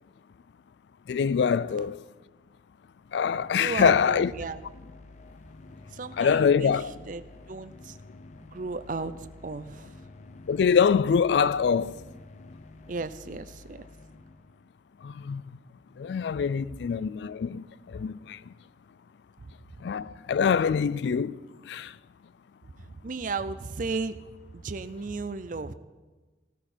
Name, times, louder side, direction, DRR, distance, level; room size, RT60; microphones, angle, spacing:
voice 1, 1.1-2.0 3.1-4.3 6.2-6.9 10.5-12.0 15.0-15.4 16.0-17.6 17.9-18.4 19.8-21.4 21.7-21.9, left 6 dB, 70° left, 0.3 m, -24 dB
sound 1, 3.0-14.8, left 2 dB, 40° left, 0.7 m, -50 dB
voice 2, 3.6-4.7 5.9-8.0 8.4-10.0 12.9-13.8 19.4-19.9 22.8-24.2 24.5-25.7, right 4 dB, 45° right, 0.5 m, -35 dB
15.5 x 13.5 x 4.3 m
head